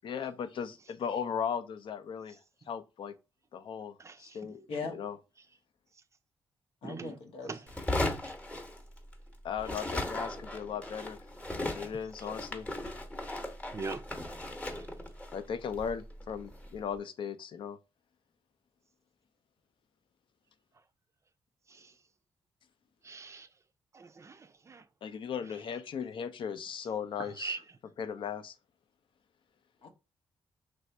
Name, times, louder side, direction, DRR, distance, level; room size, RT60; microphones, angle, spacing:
voice 1, 0.0-2.4 2.7-3.2 3.5-5.2 9.4-11.2 11.5-12.7 15.3-17.8 25.0-27.6 28.0-28.6, left 7 dB, 60° left, 0.5 m, -37 dB
voice 2, 4.0-4.4 4.8-5.0 6.8-7.1 7.5-7.6 13.7-14.0 14.4-14.5 23.0-23.5 23.9-24.4 24.7-24.8 27.4-27.6, right 4 dB, 30° right, 0.4 m, -40 dB
voice 3, 6.8-7.9 29.8-29.9, left 4 dB, 85° left, 0.9 m, -40 dB
sound 1, 7.7-9.3 9.6-16.8, left 1 dB, 15° left, 0.8 m, -37 dB
3.3 x 2.5 x 4.3 m
cardioid pair, 95°, 9 cm